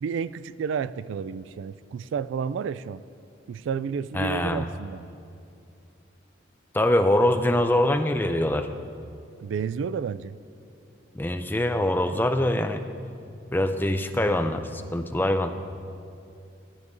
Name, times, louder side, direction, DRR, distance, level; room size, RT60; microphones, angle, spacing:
voice 1, 0.0-3.0 3.5-5.0 9.4-10.4, right 6 dB, 80° right, 15 dB, 0.3 m, -31 dB
voice 2, 4.1-4.7 6.7-8.7 11.1-12.8 13.5-15.5, left 1 dB, 10° left, 7 dB, 0.4 m, -23 dB
18.5 x 12.0 x 2.7 m, 2.5 s
head